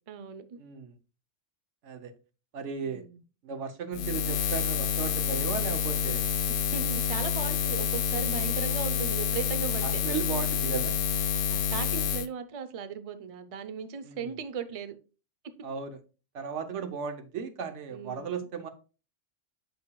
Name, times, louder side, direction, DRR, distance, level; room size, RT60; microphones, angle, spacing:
voice 1, 0.1-0.6 2.8-3.2 6.5-10.0 11.5-15.0 17.9-18.4, right 7 dB, 40° right, 0.5 m, -37 dB
voice 2, 0.6-0.9 1.8-2.1 2.5-3.0 3.4-6.3 9.8-11.0 14.0-14.3 15.6-16.0 16.3-18.7, right 6 dB, 85° right, 1.1 m, -36 dB
Buzz, 3.9-12.3, left 7 dB, 75° left, 0.8 m, -28 dB
8.5 x 6.1 x 2.2 m
omnidirectional pair, 1.2 m